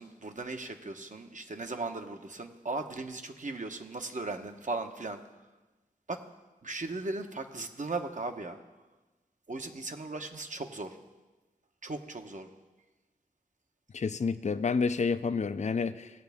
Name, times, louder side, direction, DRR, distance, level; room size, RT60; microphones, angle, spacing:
voice 1, 0.0-5.2 6.1-6.2 6.6-8.6 9.5-11.0 11.8-12.5, right 3 dB, 55° right, 5 dB, 1.0 m, -37 dB
voice 2, 13.9-16.1, left 5 dB, 50° left, 12 dB, 0.5 m, -29 dB
18.5 x 8.1 x 3.5 m, 1.2 s
cardioid pair, 45°, 15 cm